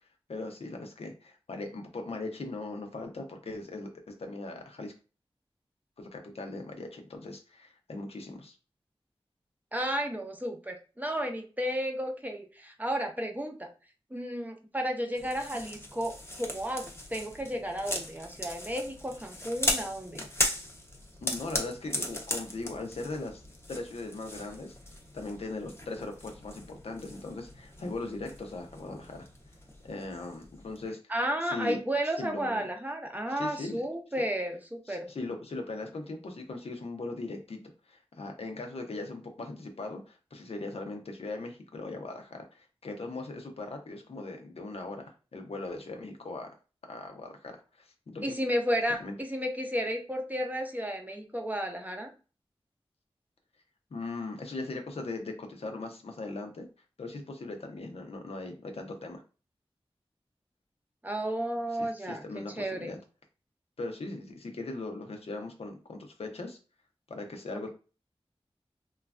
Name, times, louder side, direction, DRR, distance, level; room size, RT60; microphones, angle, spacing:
voice 1, 0.3-3.9 4.2-4.9 6.0-8.6 21.2-23.4 23.7-24.8 25.1-29.3 29.8-31.0 31.4-31.8 32.2-32.6 33.3-33.8 34.9-37.6 37.9-46.5 46.9-48.4 49.0-49.1 53.9-56.7 57.0-59.2 61.8-63.0 63.8-66.6 67.1-67.7, left 2 dB, 80° left, 3 dB, 0.6 m, -39 dB
voice 2, 9.7-13.7 14.1-20.3 31.1-35.1 48.2-52.1 61.0-63.0, equal, 15° right, 3 dB, 0.6 m, -33 dB
sound 1, 15.2-30.9, left 1 dB, 25° left, 0.6 m, -38 dB
3.1 x 2.3 x 2.4 m, 0.34 s
wide cardioid pair, 65°, 10 cm